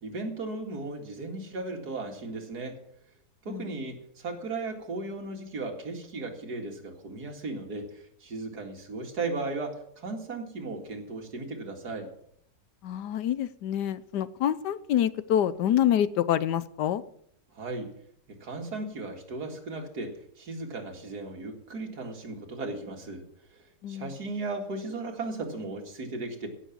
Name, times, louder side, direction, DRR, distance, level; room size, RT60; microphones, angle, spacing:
voice 1, 0.0-2.8 3.4-12.1 17.5-17.9 18.3-23.3 23.5-23.6 23.9-26.5, right 3 dB, 65° right, 2 dB, 2.6 m, -36 dB
voice 2, 12.8-17.0 23.8-24.1, left 10 dB, 80° left, 15 dB, 1.4 m, -26 dB
16.5 x 7.0 x 7.2 m, 0.71 s
omnidirectional pair, 1.8 m